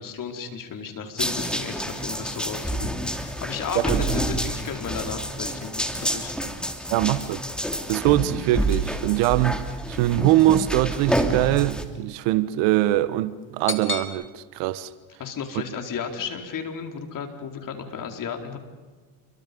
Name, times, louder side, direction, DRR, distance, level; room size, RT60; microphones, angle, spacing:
voice 1, 0.0-6.3 15.2-18.6, left 6 dB, 50° left, 4.4 m, -34 dB
sound 1, 1.2-11.8, right 1 dB, ahead, 3.2 m, -28 dB
voice 2, 6.9-7.4 7.9-9.6 9.9-14.9, right 15 dB, 80° right, 1.3 m, -22 dB
sound 2, 8.6-14.1, left 4 dB, 30° left, 3.0 m, -38 dB
29.0 x 24.0 x 5.4 m
supercardioid pair, 85°, 42 cm